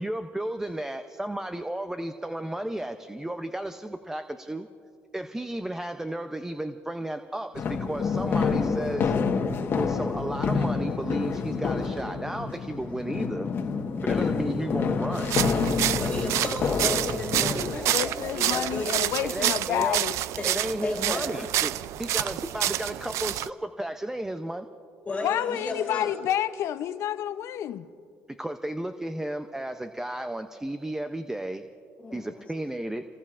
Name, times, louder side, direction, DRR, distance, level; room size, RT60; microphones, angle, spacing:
voice 1, 0.0-4.7 5.1-9.1 9.7-13.5 14.0-15.3 19.2-20.0 20.4-21.7 22.0-24.7 28.3-31.6 32.1-33.1, right 1 dB, 10° right, 8 dB, 0.6 m, -33 dB
sound 1, 7.5-17.7, left 5 dB, 45° left, 1.3 m, -28 dB
sound 2, 15.1-23.5, right 13 dB, 70° right, 0.4 m, -28 dB
voice 2, 16.0-19.0 20.4-20.5 20.8-21.5 25.0-26.2 32.0-32.4, left 2 dB, 25° left, -2 dB, 2.9 m, -34 dB
voice 3, 17.7-20.2 25.2-27.9, left 11 dB, 65° left, 13 dB, 0.6 m, -29 dB
29.5 x 19.0 x 2.5 m, 2.5 s
cardioid pair, 95°, 5 cm